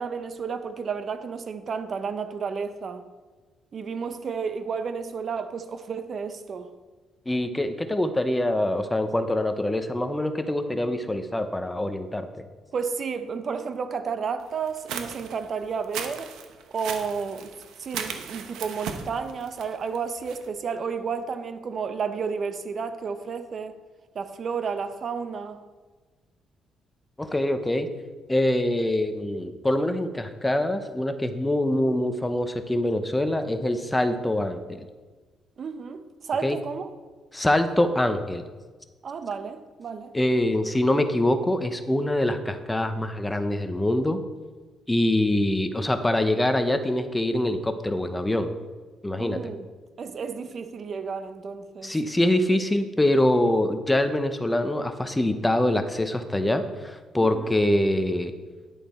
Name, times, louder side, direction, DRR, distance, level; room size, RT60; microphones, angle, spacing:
voice 1, 0.0-3.1 3.7-6.7 12.7-16.3 16.7-17.5 17.8-23.8 24.1-25.6 35.6-36.9 39.0-40.1 49.2-49.7 50.0-52.0 57.2-57.5, right 5 dB, 50° right, 10 dB, 0.7 m, -32 dB
voice 2, 7.3-12.3 27.2-27.9 28.3-34.9 36.4-36.6 37.3-38.4 40.1-44.2 44.9-48.5 49.0-49.4 51.8-58.3, left 1 dB, 10° left, 8 dB, 0.8 m, -24 dB
sound 1, 14.6-20.5, right 7 dB, 90° right, 0.9 m, -37 dB
11.0 x 6.7 x 4.3 m, 1.4 s
cardioid pair, 90°, 0 cm